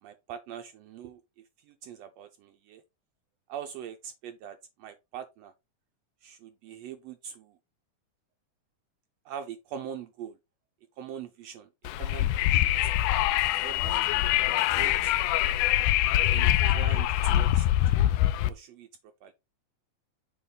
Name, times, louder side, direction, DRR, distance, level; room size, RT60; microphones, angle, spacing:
voice 1, 0.0-2.8 3.5-5.5 6.2-7.6 9.2-10.4 11.0-11.7 12.0-12.9 13.6-15.1 16.3-18.9 19.2-19.3, right 8 dB, 85° right, 1.4 m, -43 dB
Wind, 11.8-18.5, left 13 dB, 85° left, 2.0 m, -24 dB
6.8 x 2.9 x 5.5 m
omnidirectional pair, 3.6 m